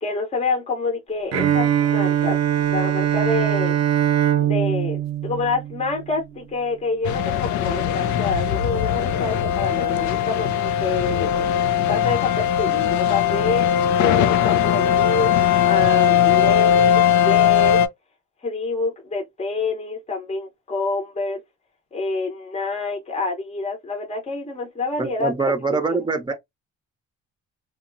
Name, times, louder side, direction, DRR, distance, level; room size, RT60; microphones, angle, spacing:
voice 1, 0.0-3.7 4.4-11.3 11.9-13.7 14.0-15.3 15.6-17.8 18.4-21.4 21.9-25.3 25.7-26.0, left 3 dB, 20° left, 0.8 m, -27 dB
Bowed string instrument, 1.3-6.2, right 10 dB, 65° right, 0.5 m, -21 dB
sound 1, 7.0-17.9, left 9 dB, 80° left, 0.5 m, -19 dB
voice 2, 25.0-26.3, right 4 dB, 15° right, 0.7 m, -23 dB
2.8 x 2.2 x 2.5 m
cardioid pair, 130°, 29 cm